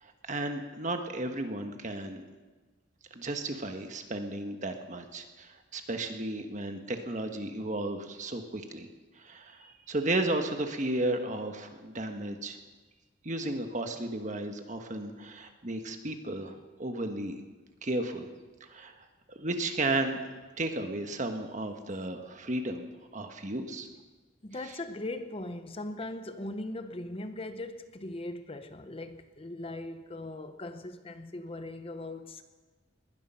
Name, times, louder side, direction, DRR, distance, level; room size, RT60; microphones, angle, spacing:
voice 1, 0.0-2.2 3.1-8.9 9.2-12.6 13.2-17.4 17.8-18.3 18.7-18.9 19.3-22.8 23.1-23.9, right 2 dB, 40° right, 1.3 m, -34 dB
voice 2, 24.4-32.4, left 2 dB, 30° left, 0.7 m, -39 dB
20.0 x 11.5 x 5.7 m
head